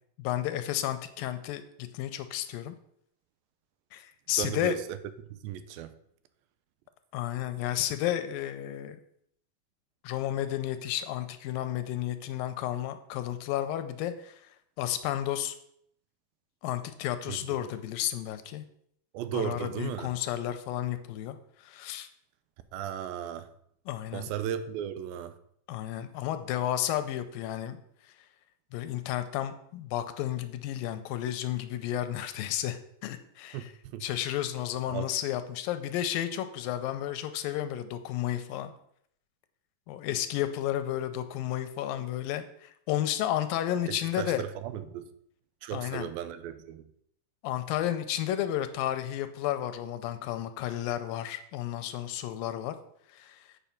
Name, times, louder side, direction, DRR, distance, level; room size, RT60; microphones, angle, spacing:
voice 1, 0.2-2.8 3.9-4.8 7.1-9.0 10.0-14.4 14.8-15.6 16.6-18.6 19.3-22.1 23.9-24.3 25.7-27.8 28.7-33.7 34.0-38.7 39.9-44.4 45.7-46.1 47.4-52.8 53.1-53.5, left 12 dB, 85° left, 10 dB, 2.3 m, -32 dB
voice 2, 4.4-5.0 5.3-5.9 17.3-17.6 19.1-20.1 22.7-23.5 24.1-25.4 33.5-33.7 33.9-34.1 34.9-35.1 43.9-45.1 45.6-46.8, right 10 dB, 85° right, 11 dB, 2.5 m, -35 dB
8.3 x 5.4 x 5.8 m, 0.70 s
omnidirectional pair, 4.2 m